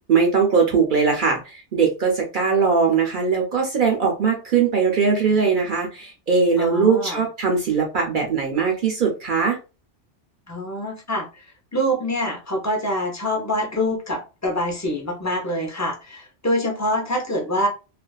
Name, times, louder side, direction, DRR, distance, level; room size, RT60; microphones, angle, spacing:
voice 1, 0.1-9.6, right 5 dB, 55° right, 0 dB, 0.6 m, -20 dB
voice 2, 6.6-7.2 10.5-17.7, equal, 20° left, 0 dB, 0.4 m, -25 dB
2.4 x 2.3 x 2.2 m, 0.31 s
omnidirectional pair, 1.2 m